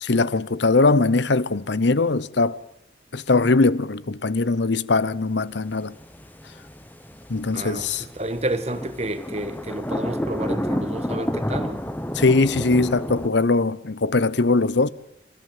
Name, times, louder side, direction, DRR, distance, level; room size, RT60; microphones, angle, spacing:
voice 1, 0.0-2.6 3.1-5.9 7.3-8.0 12.1-14.9, left 3 dB, 70° left, 0.9 m, -21 dB
sound 1, 5.5-13.3, equal, 10° left, 1.0 m, -30 dB
voice 2, 7.5-11.8, right 1 dB, 35° right, 1.6 m, -30 dB
27.0 x 14.5 x 9.0 m
head